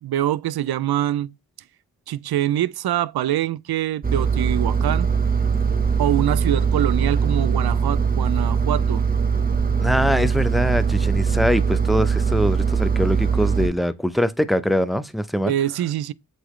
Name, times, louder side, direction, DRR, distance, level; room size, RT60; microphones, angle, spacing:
voice 1, 0.0-1.3 2.1-5.1 6.0-9.0 15.4-16.1, right 12 dB, 70° right, 0.5 m, -24 dB
Engine, 4.0-13.7, right 6 dB, 20° right, 1.0 m, -21 dB
voice 2, 9.8-15.5, equal, ahead, 0.6 m, -23 dB
8.1 x 3.9 x 3.1 m
cardioid pair, 70°, 39 cm